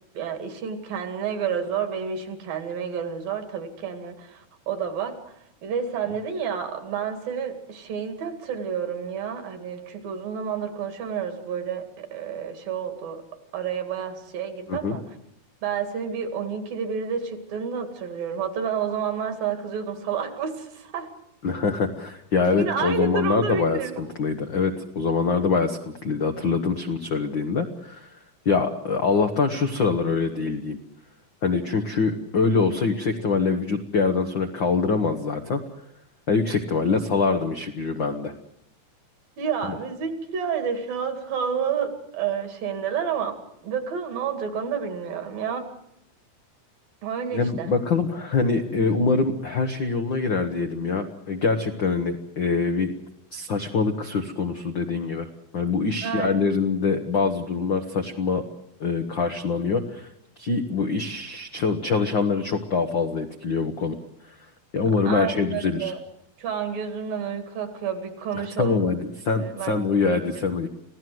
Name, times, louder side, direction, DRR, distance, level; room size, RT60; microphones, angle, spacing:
voice 1, 0.1-5.2 5.6-13.2 13.5-15.0 15.6-21.1 22.5-24.0 39.4-43.4 43.6-45.7 47.0-47.7 56.0-56.5 65.1-66.0 66.4-68.9 69.4-70.1, right 7 dB, 70° right, 7 dB, 4.0 m, -30 dB
voice 2, 21.4-28.1 28.4-30.8 31.4-35.6 36.3-38.3 47.3-52.9 53.3-58.4 58.8-60.1 60.4-64.0 64.7-65.9 68.4-70.7, left 4 dB, 70° left, 5 dB, 1.1 m, -24 dB
27.0 x 17.0 x 7.9 m, 0.78 s
omnidirectional pair, 4.3 m